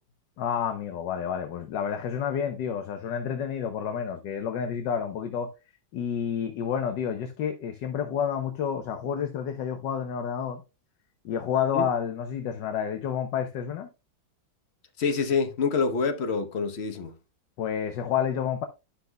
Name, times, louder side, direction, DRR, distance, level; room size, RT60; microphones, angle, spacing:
voice 1, 0.4-5.5 5.9-10.6 11.2-13.9 17.6-18.6, left 8 dB, 70° left, 1.4 m, -29 dB
voice 2, 15.0-17.1, left 5 dB, 45° left, 1.0 m, -26 dB
11.5 x 5.8 x 2.2 m
omnidirectional pair, 2.1 m